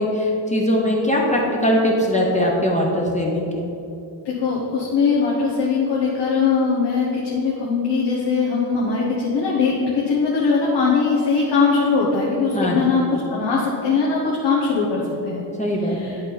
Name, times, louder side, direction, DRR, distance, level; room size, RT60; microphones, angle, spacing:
voice 1, 0.0-3.5 12.5-13.0 15.6-16.2, equal, 15° left, -2 dB, 0.7 m, -21 dB
voice 2, 4.2-15.5 15.8-16.2, left 4 dB, 70° left, -5 dB, 1.2 m, -21 dB
11.0 x 4.0 x 4.1 m, 2.9 s
wide cardioid pair, 165°, 44 cm